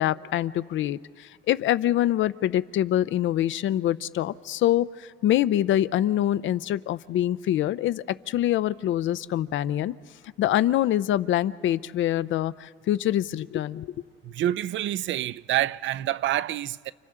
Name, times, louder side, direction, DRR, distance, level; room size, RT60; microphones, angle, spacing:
voice 1, 0.0-9.9 10.4-13.9, left 12 dB, 75° left, 0.6 m, -25 dB
voice 2, 14.2-16.9, right 12 dB, 70° right, 0.5 m, -27 dB
29.5 x 28.0 x 3.7 m
cardioid pair, 90°, 20 cm